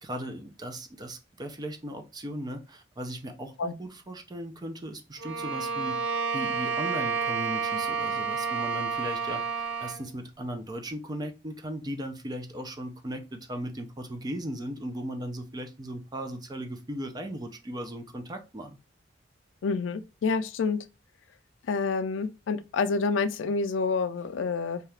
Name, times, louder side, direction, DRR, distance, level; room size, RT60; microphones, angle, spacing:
voice 1, 0.0-9.4 9.8-18.8, right 1 dB, 20° right, 0.4 m, -37 dB
Bowed string instrument, 5.2-10.1, right 5 dB, 75° right, 0.5 m, -30 dB
voice 2, 19.6-20.8 21.7-24.8, left 4 dB, 80° left, 0.4 m, -28 dB
2.7 x 2.3 x 3.2 m
head